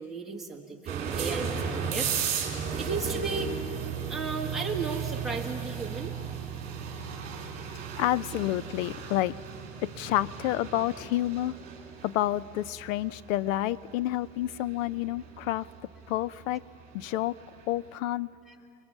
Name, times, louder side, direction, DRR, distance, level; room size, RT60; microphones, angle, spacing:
voice 1, 0.0-2.1 2.8-3.5 4.1-6.1 8.3-8.5 18.5-18.6, right 4 dB, ahead, -3 dB, 1.5 m, -35 dB
sound 1, 0.9-17.6, right 6 dB, 20° right, 3.3 m, -36 dB
voice 2, 7.7-9.3 9.8-11.6 12.0-15.7 16.1-16.6 16.9-17.3 17.7-18.3, left 14 dB, 70° left, 19 dB, 0.5 m, -29 dB
27.5 x 22.5 x 7.2 m, 2.5 s
supercardioid pair, 175°, 41 cm